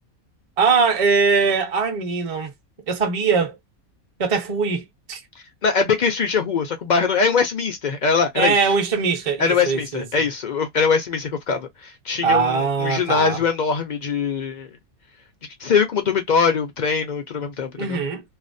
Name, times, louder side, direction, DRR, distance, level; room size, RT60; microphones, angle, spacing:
voice 1, 0.6-2.5 2.9-3.6 4.2-5.2 8.3-10.0 12.2-13.4 17.8-18.2, right 5 dB, 35° right, 0.6 m, -21 dB
voice 2, 5.6-8.5 9.4-14.7 15.6-18.0, left 5 dB, 65° left, 0.4 m, -22 dB
2.6 x 2.0 x 2.5 m
omnidirectional pair, 1.5 m